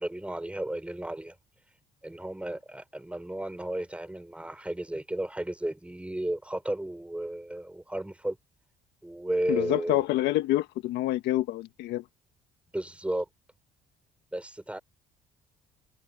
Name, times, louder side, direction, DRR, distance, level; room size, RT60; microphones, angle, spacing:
voice 1, 0.0-1.3 2.0-8.4 9.0-10.0 12.7-13.3 14.3-14.8, right 1 dB, 5° right, 6.0 m, -33 dB
voice 2, 9.5-12.0, left 16 dB, 90° left, 1.5 m, -27 dB
cardioid pair, 110°, 17 cm